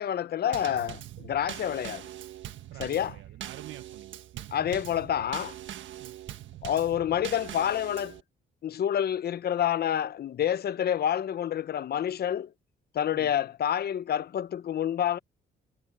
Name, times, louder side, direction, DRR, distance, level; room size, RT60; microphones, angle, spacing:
voice 1, 0.0-2.1 2.8-3.1 4.5-5.6 6.6-8.2 8.6-12.5 12.9-15.2, left 10 dB, 55° left, 0.8 m, -28 dB
Drum kit / Snare drum / Bass drum, 0.5-8.2, right 12 dB, 70° right, 1.6 m, -42 dB
voice 2, 2.7-4.5 6.0-6.2 13.1-13.3, right 15 dB, 90° right, 1.0 m, -48 dB
cardioid pair, 90°, 20 cm